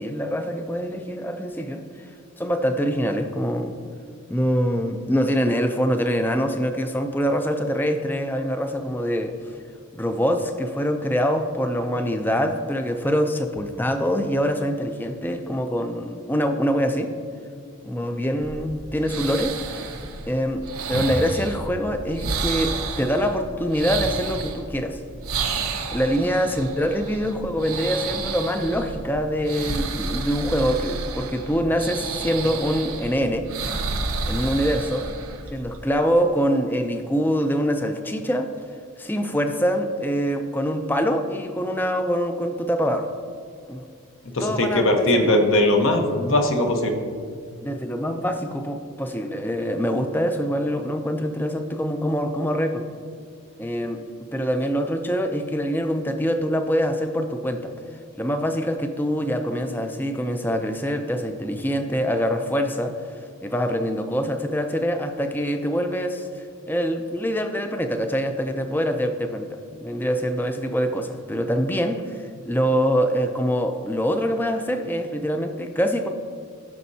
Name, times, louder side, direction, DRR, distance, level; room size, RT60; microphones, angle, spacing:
voice 1, 0.0-2.1 2.4-3.8 4.3-9.4 9.9-17.1 17.8-20.0 20.3-25.0 25.9-33.8 34.2-35.1 35.5-38.5 39.0-43.1 43.7-43.9 44.4-45.5 47.6-52.9 53.6-54.0 54.3-57.7 58.2-62.9 63.4-76.1, equal, 10° left, 6 dB, 0.4 m, -24 dB
sound 1, 18.4-35.9, right 4 dB, 85° right, 0.8 m, -31 dB
voice 2, 44.3-47.0, left 1 dB, 65° left, 3 dB, 1.0 m, -20 dB
15.5 x 6.3 x 2.8 m, 2.2 s
head